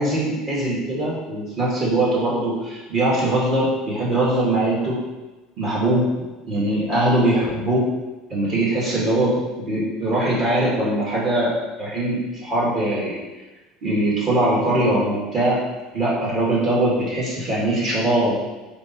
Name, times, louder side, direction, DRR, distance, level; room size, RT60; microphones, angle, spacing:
voice 1, 0.0-5.0 5.6-6.1 6.5-7.9 8.3-13.2 13.8-15.6 15.9-18.4, right 1 dB, 40° right, -6 dB, 2.2 m, -21 dB
5.3 x 4.3 x 5.9 m, 1.1 s
cardioid pair, 150°, 0 cm